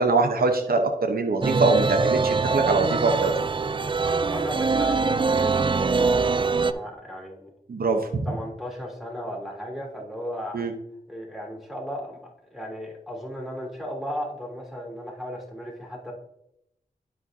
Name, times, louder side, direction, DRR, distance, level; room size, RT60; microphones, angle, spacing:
voice 1, 0.0-3.3 7.7-8.3 10.5-10.7, right 3 dB, 65° right, 4 dB, 0.9 m, -23 dB
sound 1, 1.4-6.7, right 4 dB, 30° right, 0.4 m, -23 dB
voice 2, 4.0-7.5 8.2-10.7 11.1-16.1, equal, ahead, -3 dB, 3.1 m, -36 dB
12.0 x 5.1 x 2.7 m, 0.79 s
cardioid pair, 45°, 16 cm